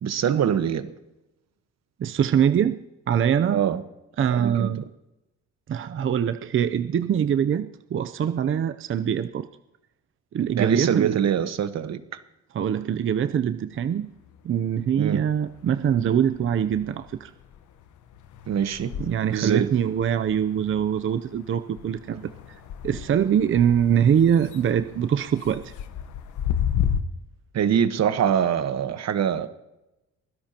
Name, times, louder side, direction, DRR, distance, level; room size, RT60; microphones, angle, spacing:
voice 1, 0.0-0.9 3.5-3.8 4.3-4.7 10.6-12.2 15.0-15.2 18.5-18.9 19.3-19.7 27.5-29.5, right 8 dB, 60° right, 1.3 m, -24 dB
voice 2, 2.0-2.8 3.1-3.6 4.2-4.8 5.7-9.5 10.3-11.2 12.5-14.1 14.4-17.3 19.0-22.3 22.8-25.7, right 8 dB, 45° right, 0.6 m, -23 dB
sound 1, 13.7-15.0 15.3-27.0, left 9 dB, 80° left, 1.1 m, -34 dB
23.5 x 16.5 x 2.9 m
cardioid pair, 90°, 30 cm